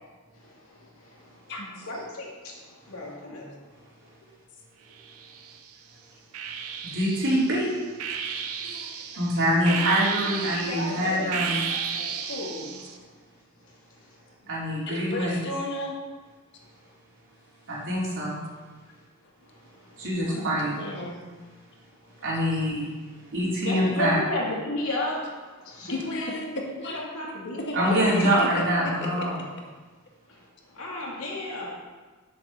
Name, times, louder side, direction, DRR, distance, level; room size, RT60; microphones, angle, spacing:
voice 1, 0.3-1.5 1.8-4.1 6.8-6.9 9.6-9.9 10.2-13.2 13.6-14.3 16.6-16.9 19.2-20.4 23.6-28.1 30.3-31.7, left 1 dB, 70° left, -3 dB, 2.5 m, -35 dB
voice 2, 1.5-1.9 8.6-8.9 14.9-16.0 20.3-21.2 25.9-26.4 26.8-27.0 27.9-28.5 28.8-29.4, left 2 dB, 55° left, 0 dB, 1.6 m, -34 dB
sound 1, 5.0-5.7 6.3-13.0, right 7 dB, 85° right, 0.9 m, -34 dB
voice 3, 6.9-7.7 9.2-11.6 14.5-15.4 17.7-18.4 20.0-20.7 22.2-22.9 23.3-24.2 27.7-29.4, equal, 60° right, -6 dB, 3.4 m, -24 dB
7.6 x 6.2 x 7.3 m, 1.4 s
head